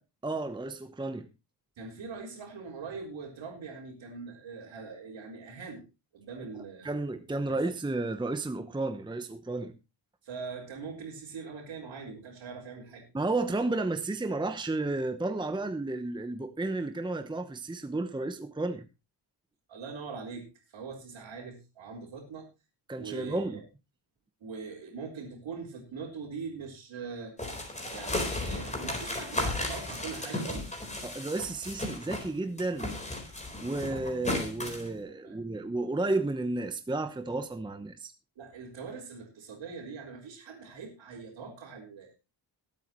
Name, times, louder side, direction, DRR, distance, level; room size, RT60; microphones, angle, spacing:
voice 1, 0.2-1.3 6.8-9.7 13.1-18.8 22.9-23.6 31.0-33.0 33.6-38.1, right 2 dB, 10° right, 0.9 m, -32 dB
voice 2, 1.8-5.8 6.1-6.9 7.5-7.6 10.2-13.0 19.7-20.5 20.7-22.5 23.0-23.6 24.4-27.3 27.9-30.7 35.2-35.4 38.4-42.2, right 5 dB, 85° right, 4.3 m, -42 dB
sound 1, 27.4-32.3 32.6-34.9, left 2 dB, 15° left, 4.1 m, -34 dB
21.5 x 8.5 x 3.1 m
wide cardioid pair, 125°, 45 cm